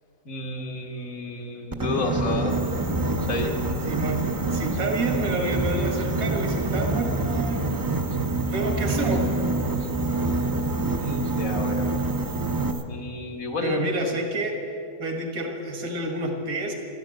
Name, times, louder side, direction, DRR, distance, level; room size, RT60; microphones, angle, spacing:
voice 1, 0.3-2.6 3.3-3.6 10.8-12.0 12.9-13.9, left 3 dB, 70° left, 2 dB, 2.0 m, -31 dB
Boat Water vehicle, 1.7-12.7, right 2 dB, 20° right, 0.5 m, -26 dB
sound 1, 2.5-12.8, right 6 dB, 50° right, 1.0 m, -43 dB
voice 2, 3.9-7.9 8.5-9.4 13.6-14.5 15.0-16.7, right 2 dB, 75° right, 2 dB, 2.2 m, -28 dB
13.5 x 13.0 x 7.8 m, 2.6 s
omnidirectional pair, 1.5 m